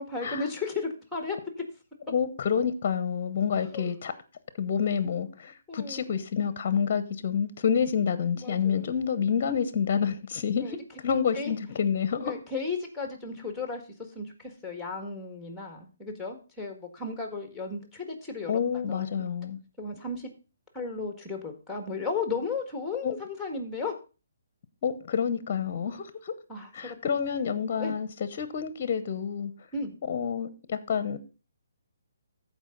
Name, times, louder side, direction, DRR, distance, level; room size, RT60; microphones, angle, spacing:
voice 1, 0.0-1.4 3.6-3.9 5.7-6.0 8.4-8.9 10.6-10.7 11.4-11.5 12.2-13.8 14.2-18.5 18.9-19.1 19.8-20.3 20.7-23.9 26.5-27.0 27.8-27.9 29.7-29.9, left 4 dB, 5° left, 1.9 m, -34 dB
voice 2, 2.1-4.1 4.6-12.3 18.5-19.6 23.0-23.1 24.8-26.3 26.7-29.5 30.0-31.2, left 7 dB, 40° left, 0.8 m, -28 dB
14.5 x 4.9 x 3.9 m
hypercardioid pair, 150°, 0 cm